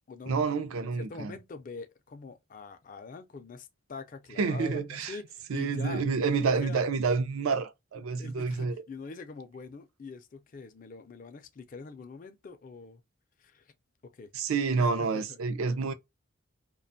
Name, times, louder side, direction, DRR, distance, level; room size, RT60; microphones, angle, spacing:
voice 1, 0.3-1.3 4.4-5.2 5.5-8.7 14.3-15.9, right 4 dB, 85° right, 0.4 m, -28 dB
voice 2, 1.0-6.1 6.3-6.8 8.2-13.0 13.4-13.7 14.1-14.3 14.8-15.4, left 4 dB, 40° left, 0.4 m, -44 dB
2.4 x 2.2 x 2.5 m
head